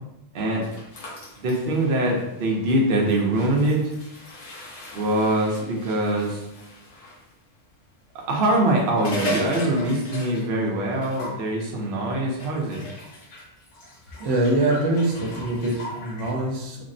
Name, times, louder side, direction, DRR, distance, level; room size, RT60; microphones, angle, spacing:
voice 1, 0.3-0.7 1.4-3.8 4.9-6.4 8.3-12.8, right 1 dB, 55° right, -2 dB, 0.7 m, -23 dB
sound 1, 0.6-7.2 8.3-10.7 10.9-11.4 12.4-16.3, equal, 70° left, 1.1 m, -37 dB
voice 2, 14.2-16.8, right 2 dB, 75° right, -1 dB, 1.0 m, -24 dB
3.4 x 2.0 x 2.5 m, 0.89 s
omnidirectional pair, 1.3 m